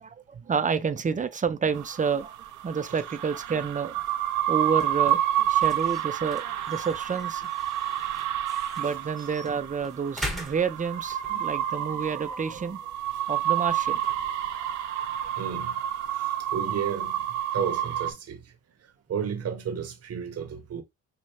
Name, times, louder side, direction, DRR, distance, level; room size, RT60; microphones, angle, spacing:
voice 1, 0.0-2.4 2.6-3.9 4.5-7.4 8.8-12.8 13.3-14.0, right 6 dB, 25° right, 0.6 m, -29 dB
sound 1, 1.7-18.1, right 11 dB, 80° right, 0.7 m, -29 dB
sound 2, 3.8-16.1, equal, ahead, 1.3 m, -44 dB
voice 2, 15.4-20.8, right 7 dB, 55° right, 1.0 m, -34 dB
5.5 x 2.4 x 3.2 m
cardioid pair, 90°, 30 cm